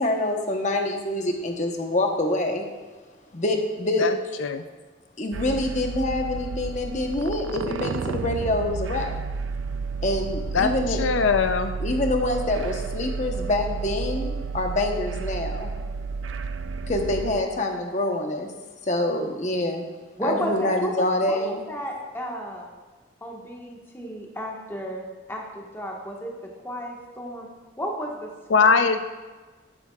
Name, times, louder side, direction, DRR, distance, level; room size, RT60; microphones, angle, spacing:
voice 1, 0.0-2.6 3.3-4.0 5.2-9.1 10.0-11.0 11.8-15.7 16.9-18.5 18.8-19.8 20.2-21.6, left 1 dB, 40° left, 3 dB, 1.0 m, -26 dB
sound 1, 5.3-17.4, right 4 dB, 80° right, 0.4 m, -31 dB
voice 2, 10.5-11.7 28.5-29.0, left 5 dB, 90° left, 8 dB, 0.5 m, -21 dB
voice 3, 20.2-22.7 23.2-27.5 27.8-29.0, equal, 15° left, -2 dB, 1.4 m, -33 dB
12.0 x 9.9 x 2.4 m, 1.3 s
head